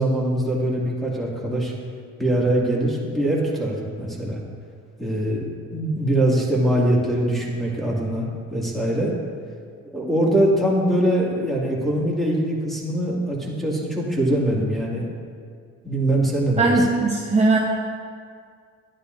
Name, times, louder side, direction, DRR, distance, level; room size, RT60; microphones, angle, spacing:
voice 1, 0.0-1.7 2.2-4.4 5.0-5.4 5.7-9.1 9.9-15.1 15.8-16.9, right 1 dB, ahead, -4 dB, 2.2 m, -22 dB
voice 2, 16.6-17.6, right 3 dB, 25° right, -2 dB, 0.9 m, -19 dB
11.0 x 9.7 x 2.6 m, 2.1 s
cardioid pair, 90°, 30 cm